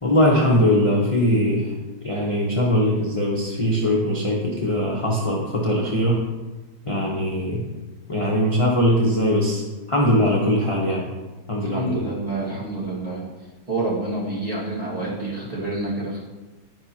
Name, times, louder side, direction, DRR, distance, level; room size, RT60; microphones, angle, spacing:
voice 1, 0.0-1.7 2.0-6.2 6.9-7.6 8.1-9.6 9.9-11.1 11.5-12.0, equal, 35° left, -4 dB, 0.5 m, -21 dB
voice 2, 11.6-13.2 13.7-16.2, right 2 dB, 20° right, -6 dB, 1.8 m, -28 dB
10.5 x 5.4 x 2.8 m, 1.2 s
omnidirectional pair, 2.0 m